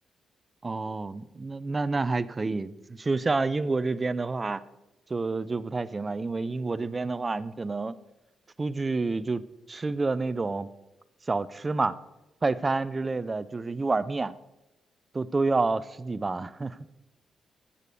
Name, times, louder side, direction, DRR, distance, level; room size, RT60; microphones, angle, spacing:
voice 1, 0.6-4.6 5.1-8.0 8.6-10.7 11.3-11.9 12.4-14.3 15.1-16.8, right 3 dB, 20° right, 16 dB, 0.4 m, -28 dB
8.9 x 8.4 x 6.9 m, 0.97 s
wide cardioid pair, 180°, 0 cm